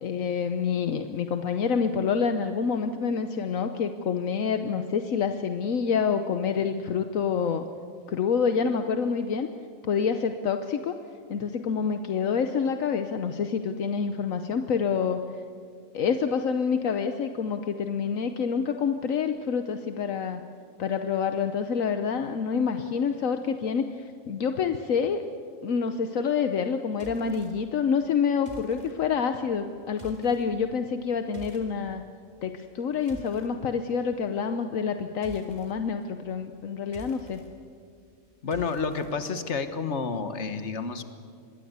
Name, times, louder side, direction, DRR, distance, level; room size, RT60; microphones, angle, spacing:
voice 1, 0.0-7.6 8.1-9.5 9.8-11.0 11.3-15.2 15.9-20.4 20.8-25.2 25.6-32.0 32.4-37.4, left 6 dB, 75° left, 8 dB, 1.3 m, -27 dB
sound 1, 27.0-27.5 28.4-28.9 29.9-30.4 31.3-31.7 32.7-33.5 35.2-35.7 36.8-37.5 38.5-39.1, right 2 dB, 30° right, 3.4 m, -47 dB
voice 2, 38.4-41.0, left 5 dB, 55° left, 9 dB, 1.7 m, -30 dB
25.5 x 21.5 x 8.1 m, 2.3 s
omnidirectional pair, 1.4 m